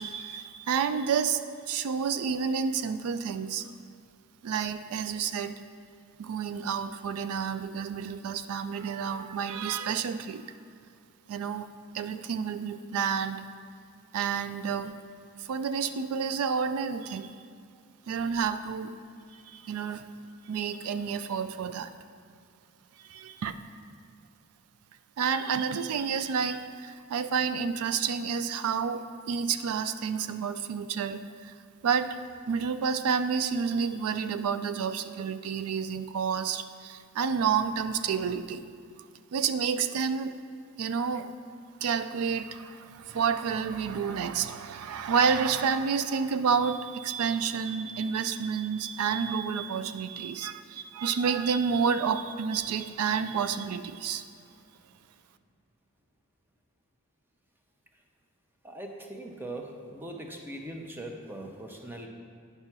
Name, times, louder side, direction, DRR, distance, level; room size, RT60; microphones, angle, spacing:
voice 1, 0.0-1.4 1.7-3.6 4.4-5.5 6.2-10.4 11.3-11.7 11.9-13.4 14.1-14.9 15.5-17.3 18.1-18.9 19.5-20.0 20.5-21.9 23.1-23.6 25.2-31.5 31.8-32.2 32.5-38.6 39.3-40.4 40.8-41.3 41.8-54.2, right 6 dB, 75° right, 11 dB, 0.3 m, -29 dB
voice 2, 58.6-62.1, right 1 dB, 10° right, 2 dB, 0.7 m, -40 dB
9.6 x 5.5 x 5.9 m, 2.3 s
head